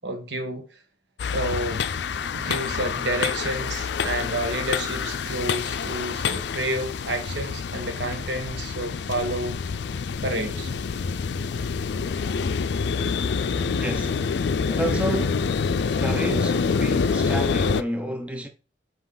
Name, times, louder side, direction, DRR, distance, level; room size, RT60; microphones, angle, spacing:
voice 1, 0.0-0.6 1.3-1.8 2.3-9.6 10.2-10.7, right 1 dB, 80° right, 1.5 m, -30 dB
sound 1, 1.2-17.8, left 5 dB, 75° left, 0.4 m, -26 dB
voice 2, 13.7-14.2 14.7-15.5 16.0-18.5, right 1 dB, 5° right, 0.7 m, -30 dB
5.8 x 4.9 x 3.9 m
head